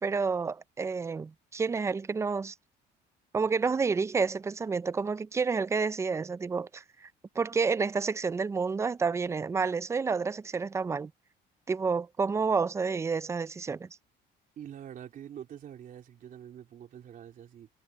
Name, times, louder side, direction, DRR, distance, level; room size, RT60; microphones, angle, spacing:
voice 1, 0.0-2.5 3.3-7.1 7.4-11.1 11.7-13.9, right 5 dB, 15° right, 0.4 m, -29 dB
voice 2, 14.6-17.7, right 10 dB, 45° right, 3.5 m, -45 dB
cardioid pair, 160°, 19 cm